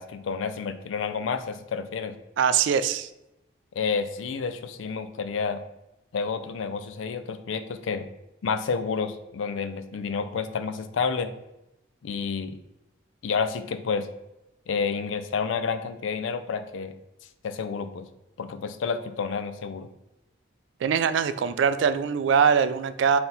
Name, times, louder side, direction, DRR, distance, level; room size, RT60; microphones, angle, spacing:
voice 1, 0.0-2.2 3.8-5.6 6.1-8.1 8.4-11.3 12.0-12.6 13.2-14.1 14.7-16.9 17.4-18.1 18.4-19.9, left 5 dB, 85° left, 10 dB, 0.4 m, -30 dB
voice 2, 2.4-3.1 20.8-23.2, right 7 dB, 75° right, 12 dB, 0.3 m, -22 dB
3.9 x 2.8 x 3.9 m, 0.90 s
head